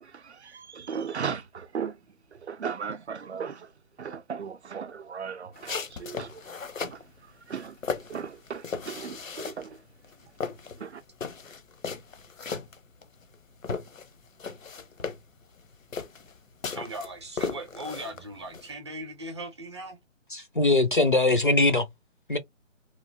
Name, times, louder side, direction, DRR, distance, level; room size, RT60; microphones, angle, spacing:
voice 1, 0.0-2.0 2.3-3.7 4.0-6.4 6.8-7.0 7.5-7.8 8.1-9.8 10.8-11.0, right 6 dB, 60° right, 0.5 m, -36 dB
sound 1, 5.5-7.0 7.5-9.8 10.0-13.4 13.6-18.7, left 5 dB, 85° left, 0.8 m, -36 dB
voice 2, 16.7-20.0, right 1 dB, 20° right, 0.7 m, -38 dB
voice 3, 20.3-21.9 22.3-22.4, left 2 dB, 40° left, 0.4 m, -21 dB
3.1 x 2.5 x 2.7 m
figure-of-eight pair, 160°, 39 cm